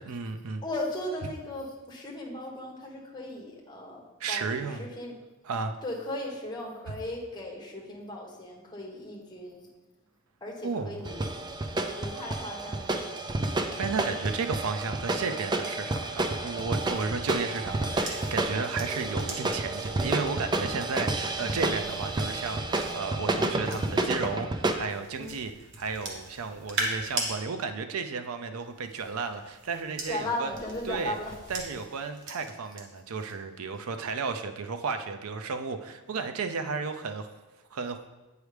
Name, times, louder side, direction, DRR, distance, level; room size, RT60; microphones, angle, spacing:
voice 1, 0.0-0.6 4.2-4.8 5.5-5.8 10.6-10.9 13.8-25.5 25.8-30.5 30.9-31.1 31.5-37.3 37.7-38.0, right 4 dB, 85° right, 8 dB, 0.5 m, -33 dB
voice 2, 0.6-5.2 5.8-9.7 10.4-11.3 11.9-13.0 21.4-21.7 25.1-25.4 30.1-31.3, left 1 dB, 20° left, -2 dB, 1.2 m, -37 dB
sound 1, 11.0-24.8, right 2 dB, 20° right, 0.4 m, -30 dB
sound 2, 16.7-24.3 24.9-27.3 28.6-32.8 33.2-33.5, right 2 dB, 60° right, 1.1 m, -40 dB
8.1 x 4.8 x 3.3 m, 1.1 s
head